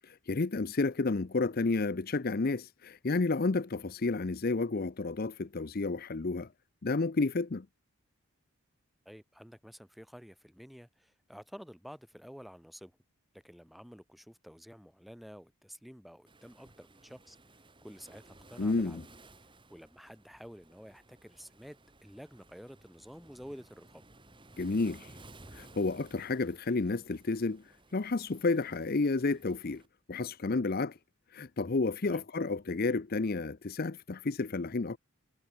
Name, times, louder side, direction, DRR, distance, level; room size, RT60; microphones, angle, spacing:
voice 1, 0.0-6.5 6.8-7.7 18.6-19.0 24.6-25.1 25.5-27.6 27.9-29.8 30.1-31.0 31.3-35.0, left 3 dB, 45° left, 0.6 m, -31 dB
voice 2, 9.1-13.0 13.3-19.0 19.7-24.0 32.0-32.2, equal, ahead, 2.3 m, -51 dB
Waves surf, 16.3-29.9, right 2 dB, 20° right, 5.4 m, -57 dB
head